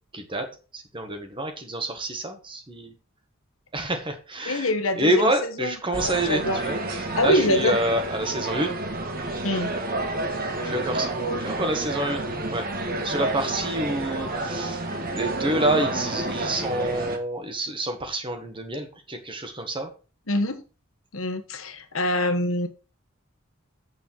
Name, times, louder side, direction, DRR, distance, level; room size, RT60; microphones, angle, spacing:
voice 1, 0.1-0.5 0.7-2.9 3.7-4.7 5.0-8.8 10.6-11.1 11.4-12.2 12.5-12.7 13.0-14.8 15.1-19.9, right 1 dB, 25° right, 6 dB, 1.6 m, -27 dB
voice 2, 4.4-5.3 5.6-6.6 7.2-7.8 9.4-9.8 20.3-20.6 21.1-22.7, left 1 dB, 80° left, 8 dB, 1.3 m, -25 dB
sound 1, 5.9-17.2, right 2 dB, 45° right, 1.5 m, -29 dB
8.2 x 6.4 x 4.6 m, 0.34 s
head